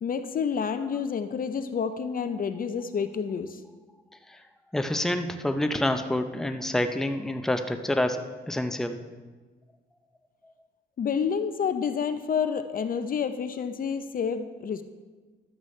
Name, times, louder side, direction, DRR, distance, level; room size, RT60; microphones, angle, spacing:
voice 1, 0.0-3.6 11.0-14.8, left 6 dB, 45° left, 10 dB, 0.5 m, -29 dB
voice 2, 4.7-9.0, left 1 dB, ahead, 7 dB, 0.6 m, -27 dB
12.5 x 8.1 x 3.2 m, 1.3 s
cardioid pair, 90°, 20 cm